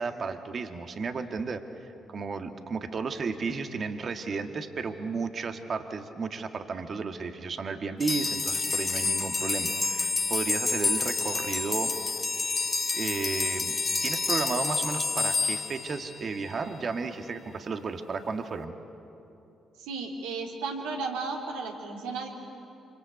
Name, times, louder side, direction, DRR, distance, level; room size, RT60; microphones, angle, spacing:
voice 1, 0.0-11.9 12.6-13.8 14.0-18.7, right 4 dB, 50° right, 7 dB, 1.8 m, -33 dB
sound 1, 8.0-16.5, left 4 dB, 35° left, 1.5 m, -29 dB
voice 2, 19.8-22.3, right 4 dB, 80° right, 0 dB, 3.3 m, -34 dB
26.5 x 25.5 x 8.4 m, 2.9 s
hypercardioid pair, 45°, 0 cm